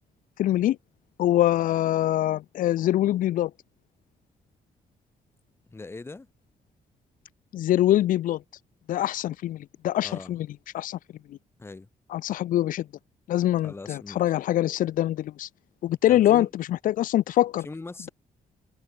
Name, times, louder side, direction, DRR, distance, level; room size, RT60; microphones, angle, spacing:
voice 1, 0.4-0.8 1.2-3.5 7.5-8.4 8.9-10.5 10.7-11.0 11.3-11.4 12.1-12.9 13.3-15.5 15.8-17.7, left 13 dB, 75° left, 0.5 m, -24 dB
voice 2, 5.7-6.3 10.0-10.4 11.6-11.9 13.6-14.3 16.1-16.5 17.6-18.1, left 3 dB, 15° left, 1.0 m, -40 dB
cardioid pair, 100°, 14 cm